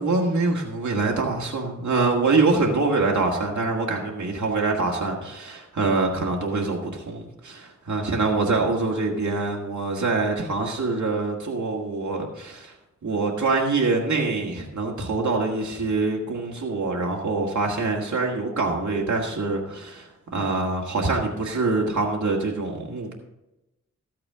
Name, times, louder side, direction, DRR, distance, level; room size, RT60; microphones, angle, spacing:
voice 1, 0.0-12.7 13.0-23.1, right 3 dB, 70° right, -1 dB, 1.8 m, -25 dB
13.5 x 8.6 x 3.6 m, 0.93 s
wide cardioid pair, 70°, 30 cm